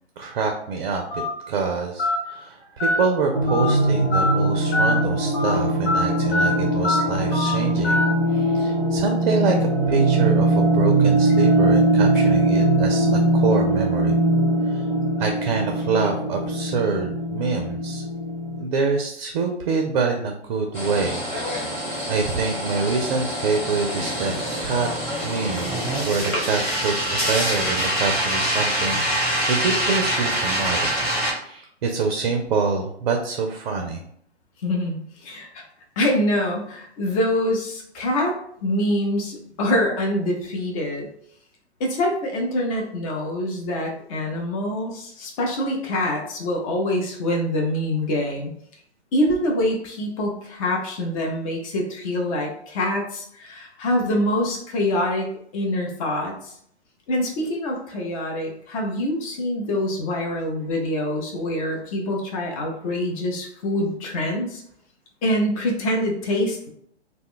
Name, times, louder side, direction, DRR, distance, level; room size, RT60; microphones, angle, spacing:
voice 1, 0.2-8.0 8.3-14.2 14.7-14.8 15.2-18.0 18.6-21.2 21.7-24.9 25.2-30.9 31.3-34.0, right 4 dB, 45° right, 3 dB, 0.4 m, -26 dB
Telephone, 1.1-1.3 2.0-2.2 2.8-3.0 3.5-3.7 4.1-4.3 4.7-4.9 5.3-5.5 5.9-6.0 6.3-6.5 6.8-7.0 7.3-7.5 7.8-8.1, left 2 dB, 70° left, 0.8 m, -22 dB
sound 1, 3.3-18.6, right 2 dB, 15° right, 0.8 m, -21 dB
sound 2, 20.7-31.3, equal, 5° left, 1.0 m, -25 dB
voice 2, 34.6-35.6 36.0-38.4 38.6-41.1 41.8-48.5 49.1-55.3 55.5-56.5 57.1-64.6 65.2-66.7, left 1 dB, 30° left, 0 dB, 0.6 m, -25 dB
2.2 x 2.1 x 3.6 m, 0.67 s
figure-of-eight pair, 120°, 34 cm